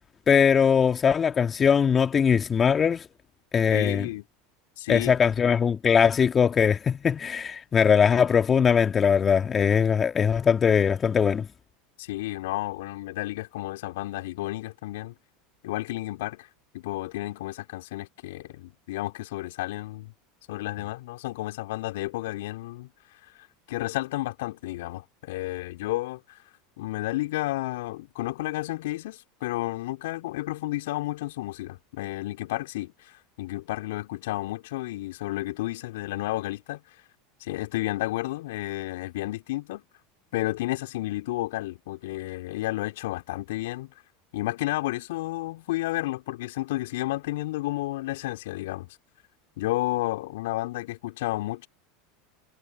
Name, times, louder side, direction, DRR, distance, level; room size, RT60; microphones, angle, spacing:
voice 1, 0.3-3.0 3.5-4.0 4.9-11.5, left 7 dB, 30° left, 2.1 m, -21 dB
voice 2, 3.7-4.2 4.8-5.1 12.0-15.1 15.6-16.5 16.7-20.1 20.5-22.9 23.7-26.2 26.8-32.9 33.4-36.8 37.4-39.8 40.3-43.9 44.3-48.9 49.6-51.7, left 17 dB, 65° left, 4.2 m, -31 dB
hypercardioid pair, 80°, 0 cm